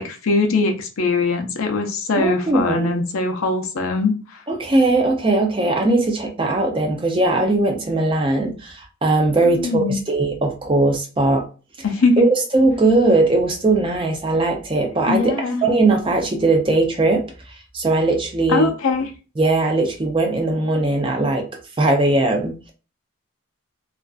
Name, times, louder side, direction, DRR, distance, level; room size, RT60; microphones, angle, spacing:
voice 1, 0.0-4.1 9.6-10.0 11.8-12.2 15.1-15.6 18.5-19.1, left 3 dB, 75° left, 3 dB, 0.5 m, -21 dB
voice 2, 2.2-3.0 4.5-11.4 12.2-15.3 15.6-17.2 17.7-18.7 19.4-21.5 21.8-22.7, right 2 dB, 25° right, 2 dB, 0.4 m, -19 dB
2.4 x 2.3 x 2.3 m, 0.34 s
head